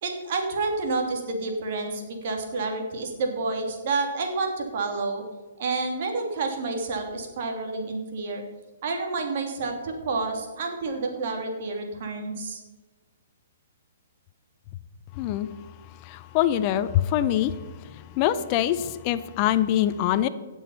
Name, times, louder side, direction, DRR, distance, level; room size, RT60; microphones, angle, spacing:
voice 1, 0.0-5.2 5.6-8.4 8.8-12.6, right 3 dB, 55° right, 2 dB, 2.9 m, -29 dB
voice 2, 15.2-15.5 16.1-17.5 18.2-20.3, left 12 dB, 35° left, 13 dB, 0.6 m, -24 dB
17.0 x 6.3 x 5.7 m, 1.3 s
hypercardioid pair, 130°, 0 cm